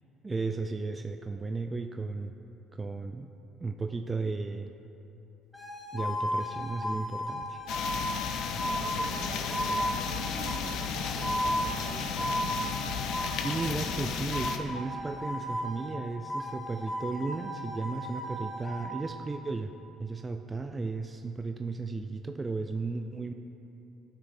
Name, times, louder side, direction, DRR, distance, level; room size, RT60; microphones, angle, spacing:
voice 1, 0.2-2.4 2.7-3.3 3.6-4.7 5.9-7.6 13.3-19.7 20.0-23.3, right 3 dB, 25° right, 6 dB, 0.3 m, -34 dB
sound 1, 5.5-13.8 14.3-16.0 16.3-18.9, equal, 10° left, 1.2 m, -35 dB
sound 2, 7.7-14.6, left 6 dB, 65° left, 0.5 m, -34 dB
voice 2, 8.3-12.6, right 2 dB, 70° right, 1 dB, 1.1 m, -45 dB
11.5 x 6.3 x 2.6 m, 3.0 s
hypercardioid pair, 65°, 0 cm